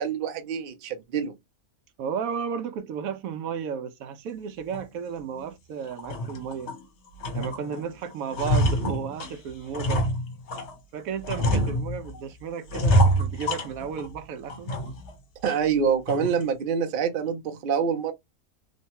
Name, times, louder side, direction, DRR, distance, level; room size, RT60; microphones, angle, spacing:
voice 1, 0.0-1.4 15.4-18.1, right 6 dB, 55° right, 0.6 m, -26 dB
voice 2, 2.0-6.7 7.3-10.1 10.9-14.7, right 7 dB, 75° right, 1.0 m, -33 dB
sound 1, 4.7-4.9 5.4-5.5 5.9-6.8 7.2-7.8 8.1-10.7 11.2-12.2 12.7-14.1 14.5-15.1 15.5-15.6 16.1-16.4, equal, 60° left, 1.0 m, -26 dB
3.1 x 2.1 x 2.7 m
omnidirectional pair, 1.5 m